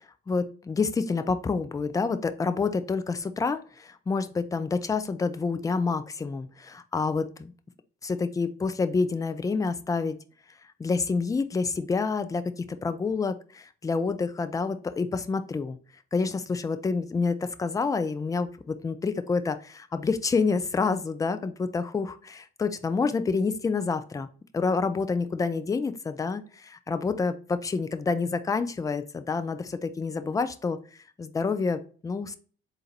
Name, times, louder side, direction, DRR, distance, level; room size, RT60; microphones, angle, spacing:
voice 1, 0.3-7.5 8.0-10.2 10.8-15.8 16.1-24.3 24.5-30.8 31.2-32.4, left 4 dB, 10° left, 10 dB, 0.3 m, -28 dB
3.8 x 2.6 x 4.3 m, 0.41 s
hypercardioid pair, 50°, 32 cm